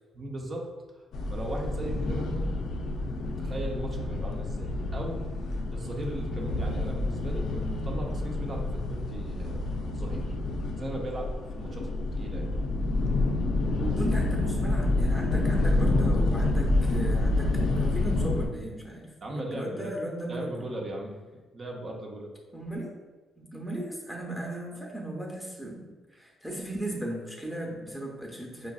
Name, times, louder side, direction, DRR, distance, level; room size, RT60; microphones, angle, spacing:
voice 1, 0.1-1.0 1.3-2.5 3.2-5.2 5.7-10.3 10.8-12.5 19.2-19.9 20.3-22.3, right 1 dB, 40° right, 0 dB, 0.7 m, -38 dB
sound 1, 1.1-18.5, left 2 dB, 70° left, 0.4 m, -28 dB
voice 2, 13.8-20.7 22.5-23.0 23.4-28.7, right 1 dB, 5° right, -1 dB, 0.8 m, -36 dB
4.9 x 2.5 x 2.3 m, 1.3 s
cardioid pair, 90°, 0 cm